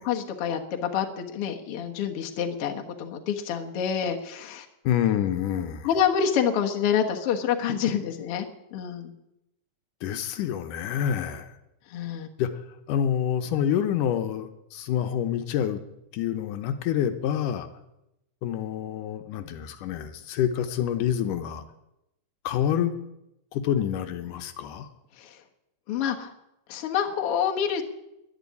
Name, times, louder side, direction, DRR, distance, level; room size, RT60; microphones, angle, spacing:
voice 1, 0.1-4.7 5.8-8.5 8.7-9.1 11.9-12.3 25.2-25.3 25.9-26.3 26.7-27.8, left 8 dB, 55° left, 3 dB, 2.0 m, -27 dB
voice 2, 4.9-5.9 10.0-11.5 12.4-12.5 12.9-15.8 16.1-17.7 18.4-21.6 22.4-22.9 23.5-24.9, left 9 dB, 80° left, 8 dB, 2.4 m, -27 dB
11.5 x 11.0 x 9.7 m, 0.87 s
omnidirectional pair, 3.7 m